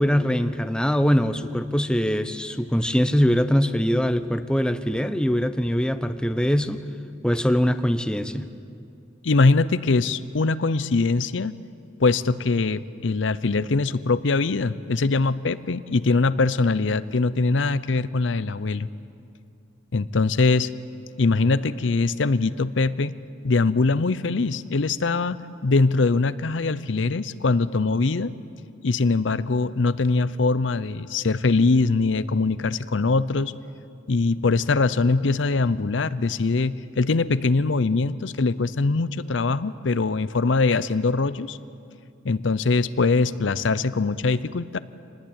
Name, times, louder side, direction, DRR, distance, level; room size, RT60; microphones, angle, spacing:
voice 1, 0.0-6.8 7.2-8.5, equal, 5° left, 10 dB, 0.7 m, -22 dB
voice 2, 9.2-11.5 12.0-18.9 19.9-20.7 21.2-23.1 23.4-28.3 28.8-33.5 34.1-41.6 42.2-44.8, left 3 dB, 65° left, 15 dB, 0.6 m, -22 dB
26.0 x 19.5 x 8.9 m, 2.5 s
head